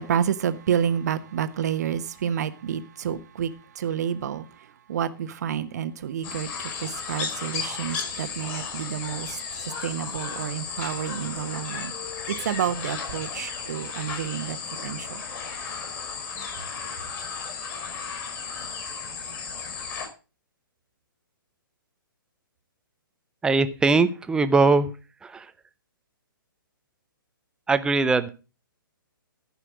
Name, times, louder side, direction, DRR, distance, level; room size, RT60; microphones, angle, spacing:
voice 1, 0.0-11.9 12.3-15.2, right 9 dB, 45° right, 1.1 m, -29 dB
sound 1, 6.2-20.1, left 5 dB, 30° left, 5.0 m, -34 dB
voice 2, 23.4-24.9 25.2-25.4 27.7-28.3, right 3 dB, 5° right, 0.6 m, -21 dB
14.5 x 5.7 x 6.2 m
figure-of-eight pair, 120°, 12 cm